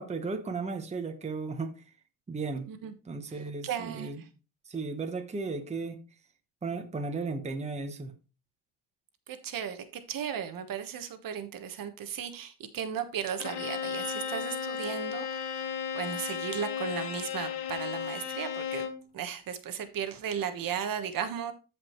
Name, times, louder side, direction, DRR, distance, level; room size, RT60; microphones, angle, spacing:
voice 1, 0.0-1.8 2.3-2.7 3.1-4.2 4.7-6.0 6.6-8.1, right 4 dB, 15° right, 1.1 m, -35 dB
voice 2, 3.3-4.3 9.3-18.9 19.1-21.5, right 8 dB, 50° right, 1.2 m, -36 dB
Bowed string instrument, 13.4-19.1, left 8 dB, 65° left, 1.3 m, -35 dB
13.5 x 5.1 x 3.1 m
cardioid pair, 130°, 43 cm